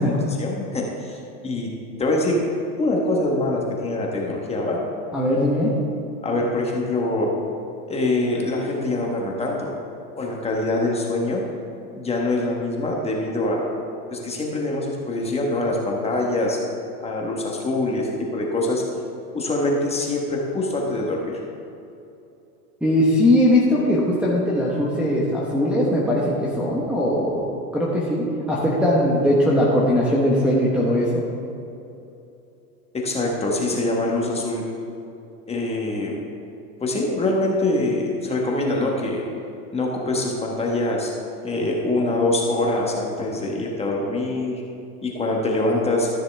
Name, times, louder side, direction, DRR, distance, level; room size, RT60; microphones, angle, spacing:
voice 1, 0.0-1.7 2.0-2.4 2.8-4.8 6.2-7.3 7.9-9.7 10.2-11.4 11.9-13.7 14.1-16.6 17.0-18.8 19.3-21.4 32.9-34.6 35.5-36.1 36.8-39.2 39.7-41.1 41.4-44.6 45.0-46.1, left 2 dB, 15° left, -2 dB, 1.3 m, -24 dB
voice 2, 5.1-5.7 22.8-31.2, left 1 dB, 5° right, -7 dB, 1.1 m, -20 dB
13.5 x 6.6 x 3.4 m, 2.8 s
supercardioid pair, 130°, 45 cm